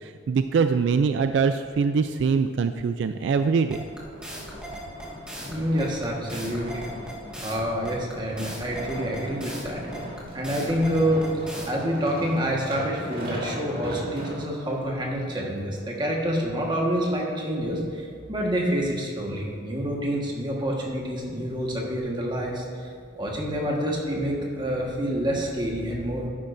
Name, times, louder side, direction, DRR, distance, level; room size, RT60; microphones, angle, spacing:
voice 1, 0.0-3.8, right 5 dB, 70° right, 9 dB, 0.3 m, -23 dB
sound 1, 3.7-11.7, right 1 dB, 5° right, 1.2 m, -39 dB
sound 2, 3.8-14.8 15.4-15.5, equal, 50° right, 2.2 m, -38 dB
voice 2, 5.5-6.8 7.4-9.8 10.3-11.2 11.6-22.9 23.1-26.3, equal, 25° right, -2 dB, 1.4 m, -27 dB
11.5 x 9.4 x 2.6 m, 2.4 s
head